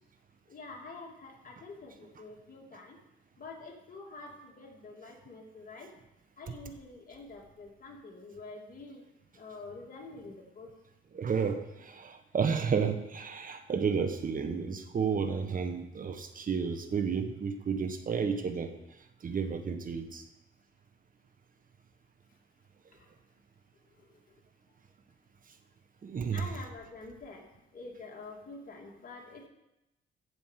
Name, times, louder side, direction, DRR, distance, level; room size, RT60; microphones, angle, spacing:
voice 1, 0.5-3.0 3.4-5.9 6.4-9.0 9.3-10.7 22.9-23.1 23.7-24.4 26.3-29.5, left 3 dB, 45° left, 0 dB, 2.9 m, -47 dB
voice 2, 11.1-18.7 19.2-20.2 26.0-26.5, right 6 dB, 45° right, 8 dB, 1.3 m, -31 dB
14.5 x 5.2 x 7.6 m, 0.92 s
cardioid pair, 90°, 20 cm